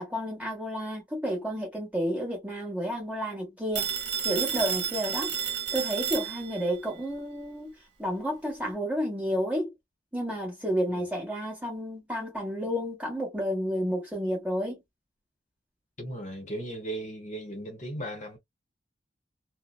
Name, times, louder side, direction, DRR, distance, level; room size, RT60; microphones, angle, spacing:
voice 1, 0.0-3.9 4.2-5.4 5.7-7.7 8.0-9.7 10.1-14.8, equal, 5° right, 1.1 m, -31 dB
Telephone, 3.8-6.8, right 8 dB, 60° right, 0.9 m, -31 dB
voice 2, 16.0-18.4, right 1 dB, 40° left, 0.9 m, -37 dB
2.6 x 2.1 x 2.3 m
head